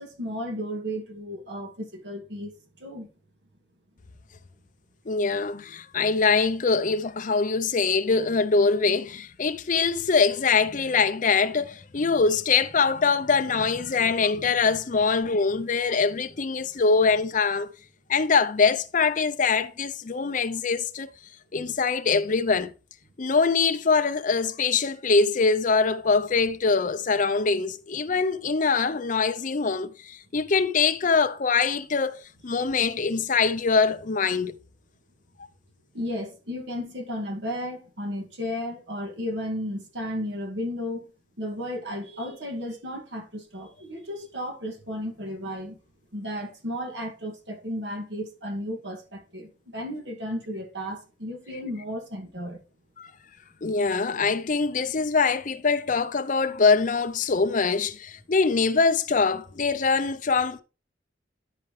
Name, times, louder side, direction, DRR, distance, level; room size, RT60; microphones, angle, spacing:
voice 1, 0.0-3.1 35.9-41.1 41.4-45.8 46.1-52.6, equal, 70° right, 2.1 m, -34 dB
voice 2, 5.1-17.7 18.1-21.1 21.5-22.7 23.2-34.6 53.0-53.1 53.6-60.6, left 4 dB, 45° left, 0.6 m, -23 dB
13.0 x 4.8 x 3.2 m
head